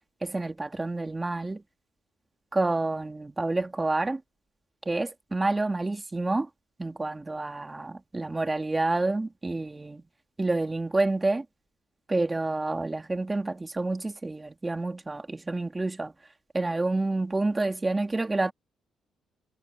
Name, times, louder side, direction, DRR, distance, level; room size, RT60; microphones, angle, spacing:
voice 1, 0.2-1.6 2.5-4.2 4.9-6.5 6.8-10.0 10.4-11.4 12.1-16.1 16.5-18.5, right 2 dB, 20° right, 2.4 m, -28 dB
cardioid pair, 90°, 0 cm